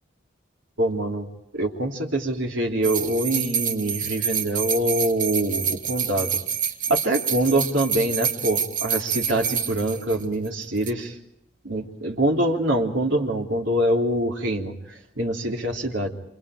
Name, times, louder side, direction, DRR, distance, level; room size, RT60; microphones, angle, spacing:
voice 1, 0.8-1.3 1.5-6.3 6.9-11.1 11.6-14.7 15.2-16.1, right 1 dB, 70° right, 1 dB, 3.3 m, -24 dB
sound 1, 2.8-10.5 10.8-10.9, right 7 dB, 40° right, 1.3 m, -27 dB
28.0 x 27.5 x 5.0 m, 0.78 s
head